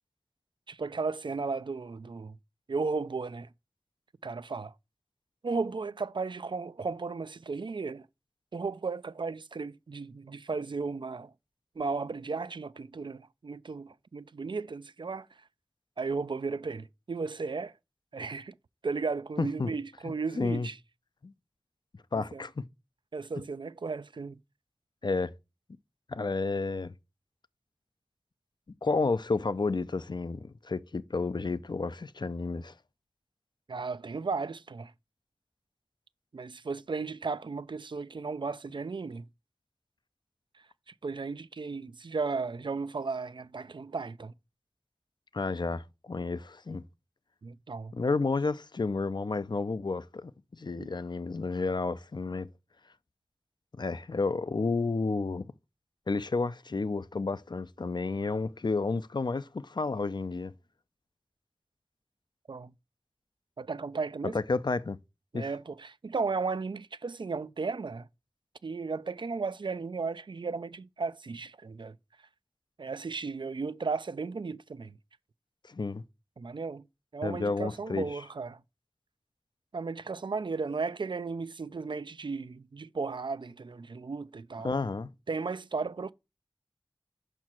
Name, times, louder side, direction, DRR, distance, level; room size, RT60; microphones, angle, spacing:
voice 1, 0.7-2.4 2.7-3.5 4.2-4.7 5.4-8.1 8.5-11.3 11.8-15.3 16.0-17.7 18.1-18.5 18.8-20.8 22.2-22.4 23.1-24.4 33.7-34.9 36.3-39.2 41.0-44.3 47.4-47.9 50.8-50.9 62.5-62.7 63.6-64.4 65.3-68.1 68.6-71.9 72.8-75.0 76.4-76.8 77.1-78.6 79.7-84.8 85.3-86.1, right 4 dB, 75° right, 0.3 m, -35 dB
voice 2, 19.4-19.7 20.1-20.7 21.2-21.3 22.1-22.7 25.0-25.3 26.1-26.9 28.8-32.7 45.3-46.8 47.9-52.5 53.8-55.5 56.1-60.5 64.3-65.0 65.3-65.5 75.7-76.0 77.2-78.2 84.6-85.1, left 3 dB, 60° left, 0.4 m, -31 dB
5.8 x 4.5 x 5.9 m
wide cardioid pair, 40°, 8 cm